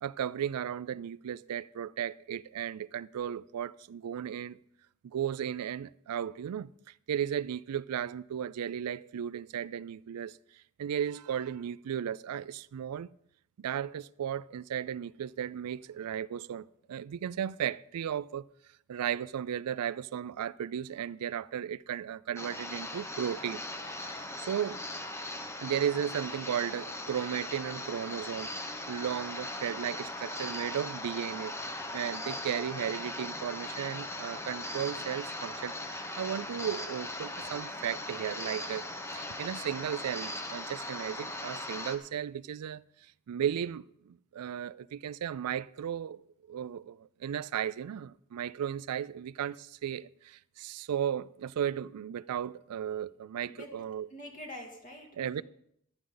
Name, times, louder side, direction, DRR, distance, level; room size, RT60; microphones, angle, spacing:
voice 1, 0.0-4.6 5.0-6.7 7.1-13.1 13.6-18.5 18.9-23.6 24.0-24.9 25.6-28.5 28.9-31.5 31.9-38.9 39.1-42.8 43.3-54.1 55.2-55.4, right 9 dB, 90° right, 0.4 m, -35 dB
sound 1, 22.4-42.0, left 1 dB, 10° left, 1.0 m, -39 dB
voice 2, 54.1-55.4, left 1 dB, 35° left, 2.5 m, -45 dB
14.5 x 11.5 x 3.9 m
head